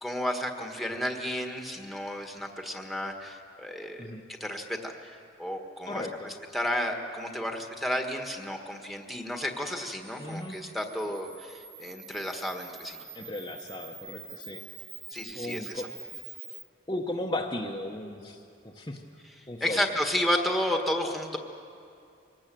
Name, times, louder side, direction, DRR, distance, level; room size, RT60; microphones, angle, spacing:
voice 1, 0.0-4.0 4.4-13.0 15.1-15.9 19.6-21.4, left 1 dB, ahead, 3 dB, 1.5 m, -32 dB
voice 2, 5.9-6.3 10.2-10.6 13.1-14.7 15.3-15.9 16.9-19.0 19.5-19.8, left 1 dB, 25° left, 0 dB, 1.0 m, -36 dB
Camera, 9.6-16.6, right 5 dB, 30° right, 1.8 m, -46 dB
24.0 x 18.5 x 7.6 m, 2.5 s
head